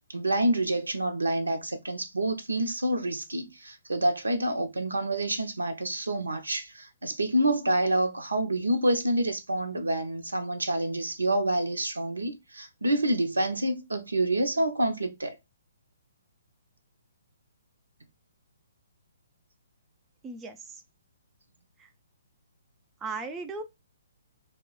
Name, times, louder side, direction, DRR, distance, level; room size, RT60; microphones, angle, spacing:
voice 1, 0.1-15.4, right 1 dB, 85° right, 0.6 m, -27 dB
voice 2, 20.2-20.8 21.8-21.9 23.0-23.6, right 4 dB, 15° right, 0.4 m, -37 dB
2.3 x 2.1 x 3.7 m
figure-of-eight pair, 130°, 0 cm